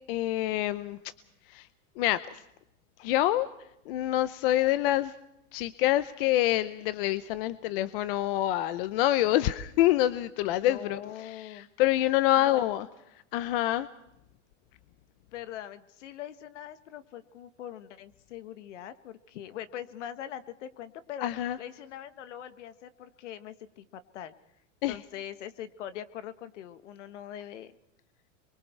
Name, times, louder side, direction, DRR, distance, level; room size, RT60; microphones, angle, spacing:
voice 1, 0.1-1.0 1.5-1.7 2.0-2.4 3.0-3.5 3.9-5.1 5.5-12.9 13.3-13.9 21.2-21.6 24.8-25.0, left 14 dB, 50° left, 14 dB, 0.8 m, -26 dB
voice 2, 10.5-11.7 12.4-12.6 15.3-23.8 24.1-24.3 24.9-27.8, left 10 dB, 70° left, 12 dB, 1.8 m, -42 dB
27.5 x 23.5 x 4.7 m, 0.81 s
supercardioid pair, 155°, 37 cm